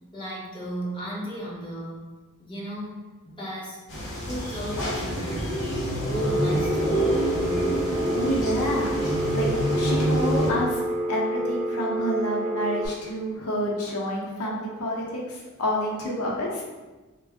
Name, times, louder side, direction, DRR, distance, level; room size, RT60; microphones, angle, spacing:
voice 1, 0.1-2.1 2.4-3.8 4.3-5.6 6.0-7.2, equal, 25° left, -7 dB, 0.9 m, -34 dB
sound 1, 3.9-10.5, right 1 dB, 55° left, 1.0 m, -27 dB
Telephone, 6.1-12.9, right 1 dB, 25° right, 1.2 m, -29 dB
voice 2, 7.7-9.5 9.7-10.8 11.1-16.6, equal, 90° left, -3 dB, 0.8 m, -29 dB
3.4 x 2.2 x 3.5 m, 1.2 s
head